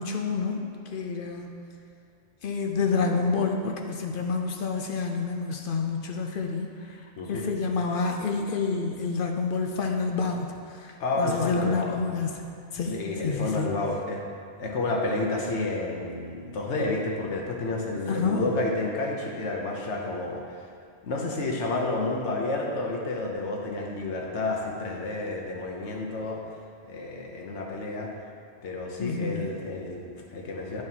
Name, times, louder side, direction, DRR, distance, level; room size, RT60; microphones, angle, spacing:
voice 1, 0.0-1.7 2.4-7.0 7.3-10.9 11.2-12.5 12.7-13.8 18.1-18.5 29.0-29.6, left 4 dB, 60° left, 3 dB, 0.6 m, -28 dB
voice 2, 11.0-12.0 12.9-14.2 14.6-20.7 21.0-26.4 26.8-28.1 28.6-30.8, left 2 dB, 75° left, -1 dB, 1.2 m, -30 dB
10.5 x 4.7 x 2.8 m, 2.4 s
omnidirectional pair, 1.2 m